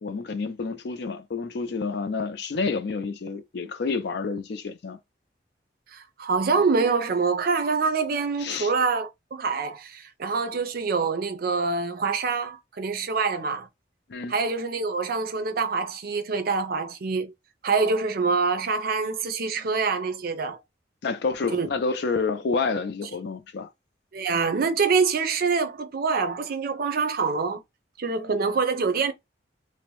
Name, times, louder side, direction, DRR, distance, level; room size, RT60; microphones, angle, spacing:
voice 1, 0.0-5.0 8.4-8.7 14.1-14.3 21.0-23.7, left 4 dB, 65° left, 0.4 m, -29 dB
voice 2, 5.9-13.7 14.3-17.3 17.6-20.6 21.5-21.7 24.1-27.6 28.0-29.1, right 4 dB, 55° right, 0.5 m, -25 dB
2.6 x 2.0 x 3.0 m
head